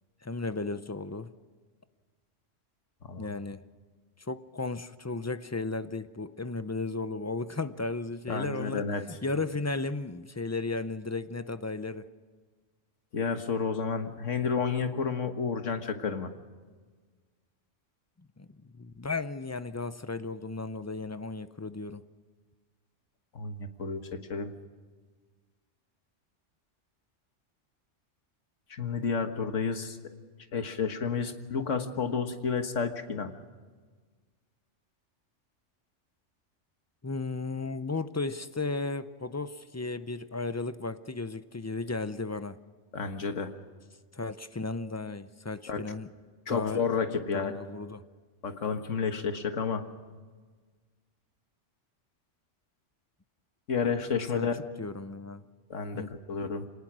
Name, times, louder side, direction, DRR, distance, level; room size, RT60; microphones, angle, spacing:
voice 1, 0.2-1.3 3.2-3.6 4.2-12.0 18.4-18.5 18.8-22.0 37.0-42.6 44.1-46.1 46.5-46.8 47.3-48.0 54.3-54.5 54.8-55.4 55.9-56.1, left 3 dB, 20° left, 12 dB, 0.4 m, -34 dB
voice 2, 3.0-3.3 8.3-9.0 13.1-16.3 23.4-24.5 28.7-30.1 30.5-33.3 42.9-43.5 45.7-45.8 46.5-47.5 48.4-49.8 53.7-54.6 55.7-56.7, left 5 dB, 80° left, 7 dB, 1.8 m, -31 dB
25.5 x 19.0 x 6.2 m, 1.5 s
omnidirectional pair, 1.3 m